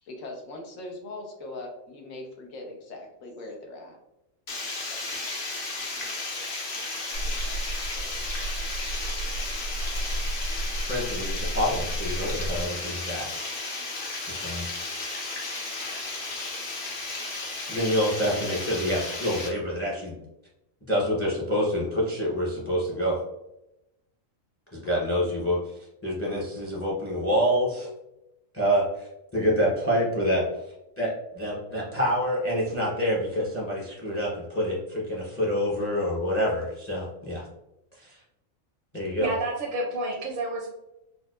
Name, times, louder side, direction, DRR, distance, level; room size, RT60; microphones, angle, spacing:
voice 1, 0.0-4.0, left 2 dB, 85° left, 1 dB, 1.1 m, -40 dB
Water, 4.5-19.5, left 3 dB, 50° left, 0.8 m, -34 dB
sound 1, 7.1-12.6, right 1 dB, 85° right, 1.2 m, -32 dB
voice 2, 10.8-13.2 14.2-14.7 17.7-20.2 20.9-23.2 24.7-25.6 26.0-27.9 28.5-30.4 31.0-37.4 38.0-38.2 38.9-39.3, equal, 20° left, -4 dB, 0.3 m, -27 dB
voice 3, 39.2-40.7, right 2 dB, 60° right, -1 dB, 0.6 m, -29 dB
4.3 x 2.1 x 2.3 m, 0.90 s
omnidirectional pair, 1.4 m